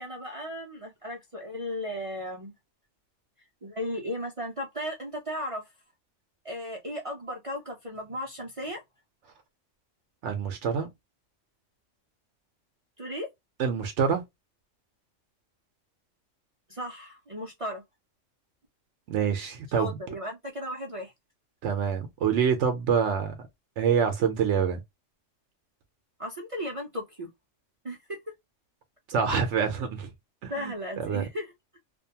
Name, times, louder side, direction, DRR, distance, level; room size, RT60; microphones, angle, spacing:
voice 1, 0.0-2.5 3.6-5.6 6.4-8.8 13.0-13.3 16.7-17.8 19.7-21.1 26.2-27.3 27.8-28.2 30.5-31.5, equal, 45° right, 0.4 m, -35 dB
voice 2, 10.2-10.9 13.6-14.2 19.1-20.0 21.6-23.4 23.8-24.8 29.1-30.1 30.4-31.3, right 7 dB, 75° right, 0.9 m, -26 dB
2.5 x 2.2 x 2.7 m
omnidirectional pair, 1.3 m